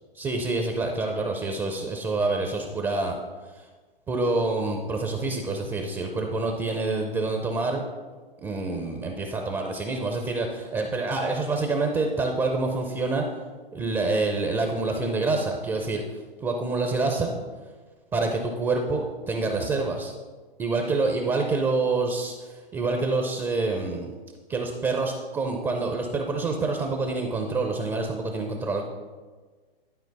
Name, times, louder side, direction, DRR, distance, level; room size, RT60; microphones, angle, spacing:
voice 1, 0.1-3.2 3.5-3.7 4.1-7.8 8.4-13.2 13.7-16.0 16.4-17.3 18.1-20.1 20.6-24.1 24.5-28.8, right 3 dB, 10° right, 3 dB, 0.5 m, -27 dB
11.0 x 4.3 x 4.0 m, 1.4 s
hypercardioid pair, 125°, 30 cm